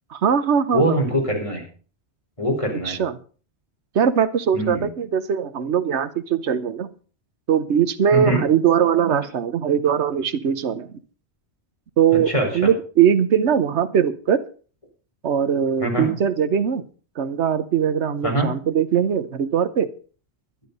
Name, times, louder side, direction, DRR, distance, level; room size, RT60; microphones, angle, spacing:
voice 1, 0.1-1.0 2.8-3.2 3.9-6.9 7.5-10.9 12.0-14.4 15.2-16.8 17.2-19.9, right 8 dB, 85° right, 13 dB, 1.2 m, -21 dB
voice 2, 0.7-1.6 2.4-3.0 4.5-4.9 8.1-8.4 12.3-12.5 15.8-16.1 18.2-18.5, right 1 dB, 30° left, 0 dB, 4.5 m, -22 dB
11.5 x 11.5 x 5.4 m, 0.39 s
omnidirectional pair, 1.1 m